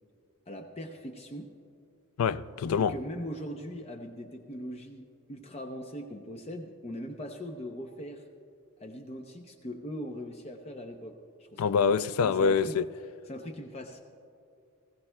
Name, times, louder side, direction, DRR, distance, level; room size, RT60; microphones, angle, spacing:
voice 1, 0.5-1.5 2.7-8.2 8.8-11.9 12.2-12.8 13.3-14.0, equal, 30° left, 0.6 m, -40 dB
voice 2, 2.2-2.9 11.6-12.8, left 6 dB, 80° left, 0.3 m, -25 dB
20.5 x 15.5 x 2.2 m
head